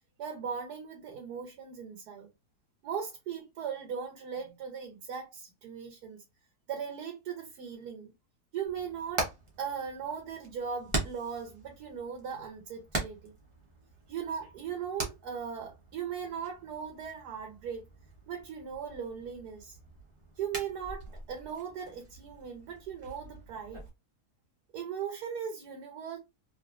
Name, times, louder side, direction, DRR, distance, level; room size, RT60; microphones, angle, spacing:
voice 1, 0.2-2.3 2.8-6.2 6.7-8.1 8.5-9.3 9.6-13.3 14.1-17.8 18.3-19.8 20.4-23.8 24.7-26.2, right 7 dB, 85° right, 1.3 m, -38 dB
Hammer, 8.6-23.9, right 2 dB, 25° right, 0.7 m, -42 dB
3.2 x 2.6 x 2.4 m
omnidirectional pair, 1.7 m